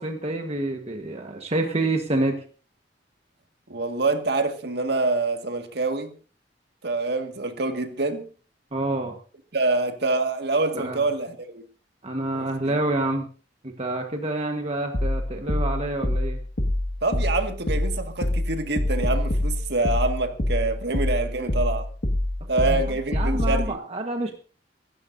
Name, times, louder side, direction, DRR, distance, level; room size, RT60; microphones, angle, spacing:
voice 1, 0.0-2.4 8.7-9.2 10.7-11.0 12.0-13.3 13.6-16.4 22.6-22.8 23.1-24.3, right 2 dB, 35° right, 1.4 m, -27 dB
voice 2, 3.7-6.1 6.8-8.2 9.5-11.6 12.3-12.8 17.0-21.9 22.5-23.8, right 3 dB, 70° right, 1.9 m, -26 dB
sound 1, 14.9-23.7, left 1 dB, 55° left, 1.8 m, -25 dB
25.5 x 13.0 x 2.7 m
head